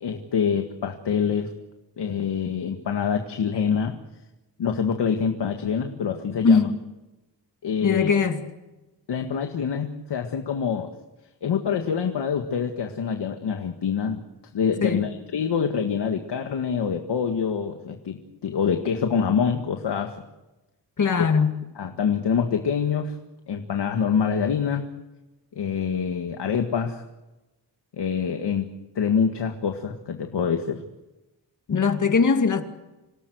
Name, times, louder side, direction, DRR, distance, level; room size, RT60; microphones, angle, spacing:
voice 1, 0.0-1.5 2.0-3.9 4.6-6.7 7.6-8.1 9.1-10.9 11.4-14.2 14.5-20.2 21.8-23.2 23.5-24.9 25.6-27.0 28.0-30.8, left 6 dB, 80° left, 1.9 m, -25 dB
voice 2, 6.4-6.8 7.8-8.4 14.8-15.0 21.0-21.5 31.7-32.6, left 5 dB, 45° left, 2.4 m, -20 dB
27.0 x 18.0 x 8.0 m
wide cardioid pair, 150°, 41 cm